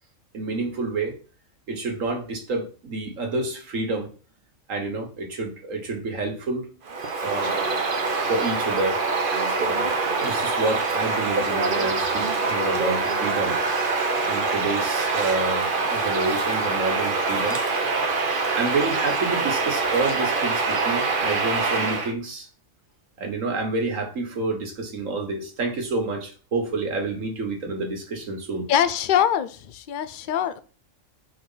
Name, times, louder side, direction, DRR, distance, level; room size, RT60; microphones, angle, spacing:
voice 1, 0.3-1.1 1.7-4.1 4.7-6.7 7.2-7.5 8.3-9.0 9.6-9.9 10.2-13.6 14.2-17.6 18.6-22.5 23.2-28.6, right 3 dB, 75° right, 1.8 m, -28 dB
Bird vocalization bird call bird song, 6.9-22.1, right 3 dB, 45° right, 0.9 m, -24 dB
voice 2, 28.7-30.6, left 9 dB, 55° left, 0.6 m, -23 dB
5.1 x 4.0 x 5.5 m
omnidirectional pair, 1.4 m